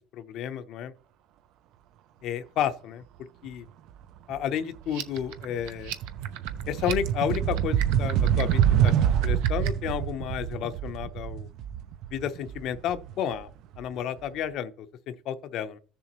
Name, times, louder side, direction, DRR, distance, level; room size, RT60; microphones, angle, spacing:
voice 1, 0.1-0.9 2.2-3.0 3.4-3.6 4.3-5.9 6.7-8.9 9.2-11.5 12.1-13.5 13.8-14.9 15.3-15.8, left 9 dB, 55° left, 0.7 m, -31 dB
sound 1, 4.3-4.6 4.9-13.8, right 9 dB, 55° right, 0.4 m, -26 dB
sound 2, 4.8-9.9, right 12 dB, 85° right, 0.9 m, -38 dB
14.0 x 6.9 x 3.0 m
cardioid pair, 145°, 0 cm